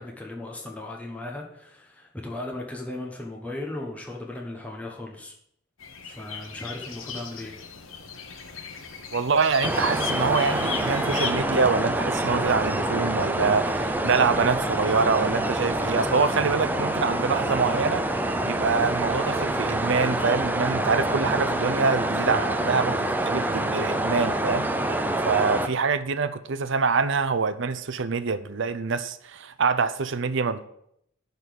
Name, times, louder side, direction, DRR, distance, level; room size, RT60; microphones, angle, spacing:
voice 1, 0.0-5.3 6.0-7.6, left 2 dB, 5° left, -1 dB, 1.2 m, -37 dB
sound 1, 5.8-11.3, left 6 dB, 80° left, 1.2 m, -36 dB
voice 2, 9.1-30.7, right 5 dB, 65° right, 13 dB, 0.6 m, -25 dB
sound 2, 9.6-25.7, right 1 dB, 10° right, 0.6 m, -26 dB
11.0 x 4.1 x 7.0 m, 0.72 s
head